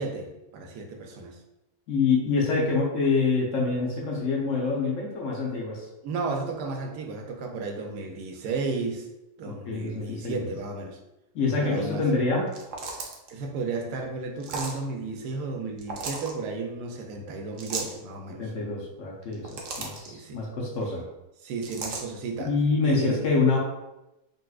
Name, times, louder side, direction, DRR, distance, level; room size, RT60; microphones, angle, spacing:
voice 1, 0.0-1.4 6.0-9.1 9.4-11.0 11.6-12.0 13.3-18.5 20.1-20.4 21.4-22.5 22.8-23.2, right 3 dB, 80° right, 2 dB, 1.1 m, -33 dB
voice 2, 1.9-5.9 9.4-10.5 11.3-12.4 18.4-21.0 22.4-23.6, left 4 dB, 65° left, -3 dB, 0.9 m, -26 dB
sound 1, 12.5-13.3 14.4-14.8 15.8-16.3 17.6-18.0 19.2-20.1 21.6-22.0, right 4 dB, 65° right, 0.8 m, -35 dB
4.0 x 2.4 x 2.3 m, 0.94 s
omnidirectional pair, 1.7 m